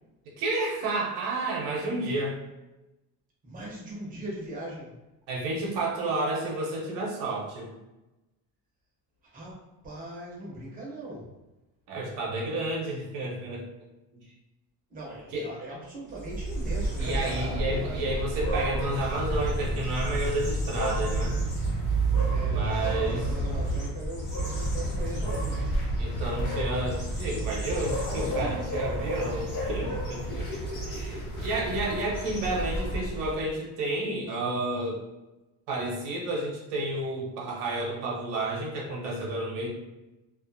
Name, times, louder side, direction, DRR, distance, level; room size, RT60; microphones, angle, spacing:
voice 1, 0.4-2.4 5.3-7.7 11.9-13.7 14.2-14.3 15.3-15.5 17.0-21.4 22.5-23.2 26.0-30.4 31.4-35.0 35.7-39.7, right 2 dB, 80° right, -3 dB, 0.7 m, -31 dB
voice 2, 3.4-4.9 9.3-11.3 14.9-18.0 22.3-25.8 30.3-31.5, right 1 dB, 20° right, -4 dB, 0.6 m, -40 dB
sound 1, 16.1-33.4, right 1 dB, 50° left, 1.1 m, -30 dB
2.4 x 2.3 x 2.5 m, 1.0 s
cardioid pair, 170°, 41 cm